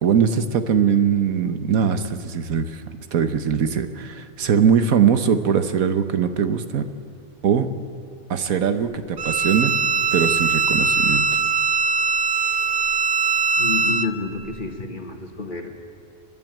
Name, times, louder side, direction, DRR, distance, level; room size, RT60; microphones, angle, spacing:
voice 1, 0.0-2.8 3.1-6.9 7.4-7.7 8.3-9.8 10.1-11.3, right 7 dB, 85° right, 9 dB, 1.5 m, -21 dB
Bowed string instrument, 9.2-14.1, right 5 dB, 65° right, 0.4 m, -21 dB
voice 2, 13.6-15.8, left 3 dB, 35° left, 4 dB, 1.9 m, -29 dB
29.5 x 11.0 x 9.2 m, 2.6 s
omnidirectional pair, 1.4 m